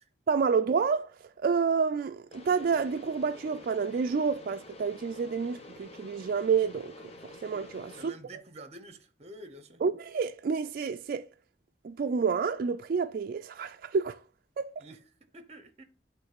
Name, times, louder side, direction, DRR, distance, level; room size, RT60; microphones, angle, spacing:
voice 1, 0.3-1.1 1.4-6.9 7.4-8.1 9.8-11.3 11.8-14.2 14.6-14.7, right 5 dB, 55° right, 0.3 m, -29 dB
sound 1, 2.3-8.1, left 2 dB, 35° left, 1.0 m, -49 dB
voice 2, 7.9-9.8 14.8-15.8, right 1 dB, 40° right, 0.8 m, -48 dB
8.3 x 3.1 x 5.8 m
head